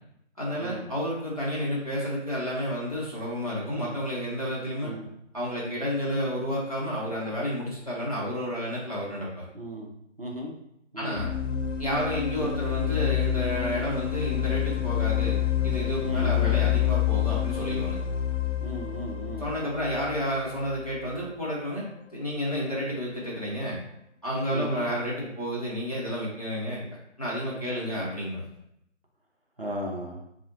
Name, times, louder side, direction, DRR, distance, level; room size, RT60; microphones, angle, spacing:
voice 1, 0.4-4.9 5.3-9.3 11.0-11.3 11.8-15.4 15.6-18.0 19.4-21.9 22.1-23.8 24.2-26.8 27.2-28.4, equal, 30° left, -7 dB, 0.7 m, -30 dB
voice 2, 9.5-9.9 10.2-10.6 10.9-11.3 12.4-12.5 16.0-16.5 18.6-19.5 24.5-24.9 27.6-27.9 29.6-30.3, right 1 dB, 50° right, -1 dB, 0.5 m, -36 dB
sound 1, 11.2-21.0, left 11 dB, 75° left, 0.5 m, -28 dB
3.8 x 2.0 x 2.9 m, 0.77 s
figure-of-eight pair, 165°, 37 cm